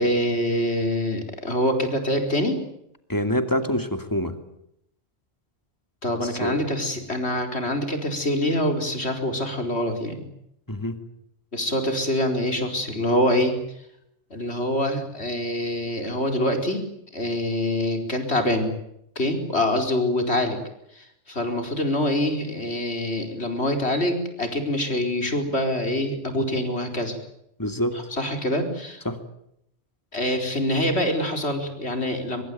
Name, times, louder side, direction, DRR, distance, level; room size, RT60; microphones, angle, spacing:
voice 1, 0.0-2.6 6.0-10.2 11.5-13.5 14.3-16.8 17.1-18.7 19.2-20.6 20.9-27.2 27.9-29.0 30.1-32.4, left 1 dB, 70° left, 5 dB, 4.7 m, -25 dB
voice 2, 3.1-4.3 6.2-6.6 10.7-11.1 27.6-28.0 29.0-29.2, left 1 dB, 15° left, 8 dB, 2.5 m, -26 dB
24.0 x 22.5 x 9.4 m, 0.78 s
omnidirectional pair, 1.2 m